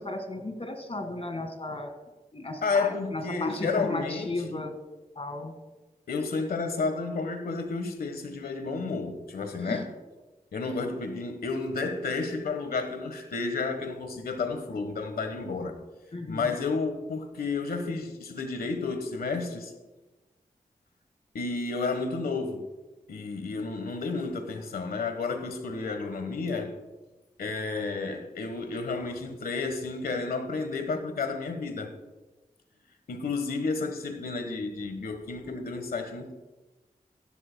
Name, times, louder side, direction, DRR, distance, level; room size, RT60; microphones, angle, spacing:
voice 1, 0.0-1.9 2.3-4.8 5.2-5.5 9.6-9.9 10.6-10.8 16.1-16.5, left 2 dB, 40° left, 1.9 m, -35 dB
voice 2, 2.6-4.7 6.1-9.9 10.5-15.8 16.3-19.7 21.3-22.6 23.1-26.7 27.4-31.9 33.1-36.3, left 4 dB, 90° left, 1.3 m, -31 dB
15.5 x 12.0 x 2.2 m
cardioid pair, 45°, 15 cm